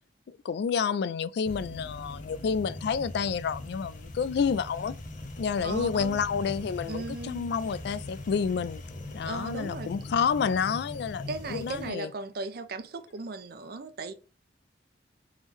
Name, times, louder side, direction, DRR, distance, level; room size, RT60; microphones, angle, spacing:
voice 1, 0.3-4.9 5.4-8.8 9.1-11.2 11.5-12.1, left 6 dB, 65° left, 0.3 m, -29 dB
sound 1, 1.5-11.9, left 2 dB, 45° left, 0.8 m, -41 dB
voice 2, 5.6-6.2 6.8-7.5 9.2-9.9 11.3-14.1, right 3 dB, 60° right, 0.5 m, -37 dB
3.6 x 3.1 x 3.2 m
head